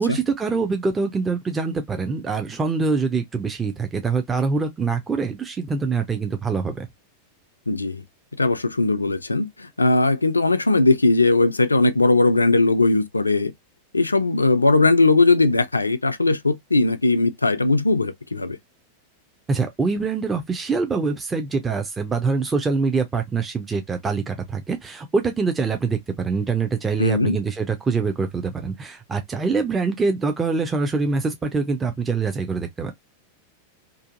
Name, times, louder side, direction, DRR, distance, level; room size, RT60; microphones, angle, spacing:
voice 1, 0.0-6.9 19.5-32.9, right 4 dB, 15° right, 0.4 m, -24 dB
voice 2, 7.7-8.0 8.4-13.5 13.9-18.6 27.0-27.4, left 2 dB, 80° left, 0.3 m, -19 dB
2.6 x 2.4 x 2.4 m
figure-of-eight pair, 90°, 0 cm